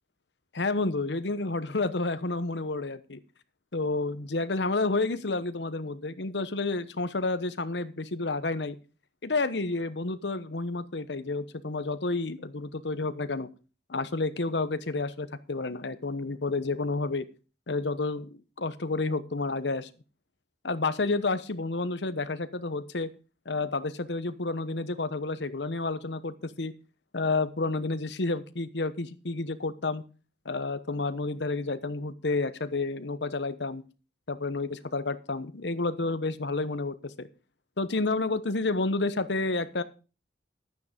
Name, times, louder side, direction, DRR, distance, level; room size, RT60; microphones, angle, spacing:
voice 1, 0.5-3.2 3.7-8.8 9.2-13.5 13.9-17.2 17.7-19.9 20.6-23.1 23.4-26.7 27.1-30.0 30.4-33.8 34.3-37.3 37.8-39.8, left 3 dB, 70° left, 13 dB, 1.0 m, -30 dB
12.0 x 9.4 x 5.1 m, 0.34 s
head